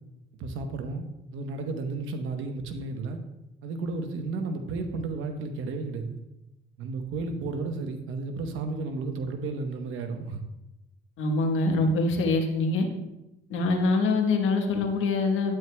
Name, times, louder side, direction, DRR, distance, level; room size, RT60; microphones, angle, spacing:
voice 1, 0.4-3.2 3.6-6.2 6.8-10.4, right 3 dB, 85° right, 6 dB, 1.0 m, -33 dB
voice 2, 11.2-12.9 13.5-15.5, left 3 dB, 85° left, 3 dB, 1.2 m, -24 dB
9.1 x 9.0 x 2.3 m, 0.95 s
cardioid pair, 90°, 20 cm